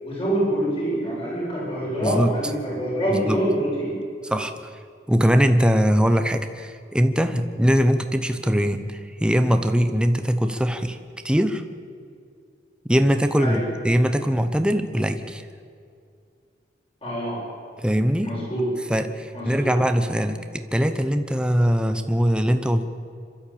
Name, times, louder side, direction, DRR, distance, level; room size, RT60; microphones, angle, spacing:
voice 1, 0.0-4.0 13.4-13.6 17.0-17.4 18.2-18.7 19.3-19.7, right 1 dB, 30° left, -6 dB, 7.8 m, -25 dB
voice 2, 2.0-2.3 3.1-3.4 4.2-4.7 5.1-11.0 11.2-11.6 12.9-15.5 17.8-18.3 18.9-22.8, equal, 5° right, 8 dB, 0.9 m, -21 dB
26.5 x 13.0 x 8.7 m, 2.3 s
head